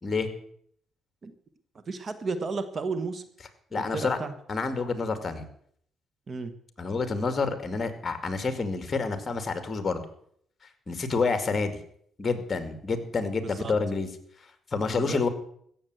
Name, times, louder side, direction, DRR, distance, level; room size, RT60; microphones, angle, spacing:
voice 1, 1.9-3.2 3.8-4.3 6.3-6.5 13.4-13.7 14.9-15.2, right 4 dB, 40° right, 11 dB, 1.3 m, -33 dB
voice 2, 3.7-4.2 4.5-5.5 6.8-10.0 10.9-11.8 12.2-14.1 14.7-15.3, left 4 dB, 30° left, 9 dB, 2.3 m, -28 dB
16.0 x 7.3 x 7.9 m, 0.65 s
cardioid pair, 90°, 0 cm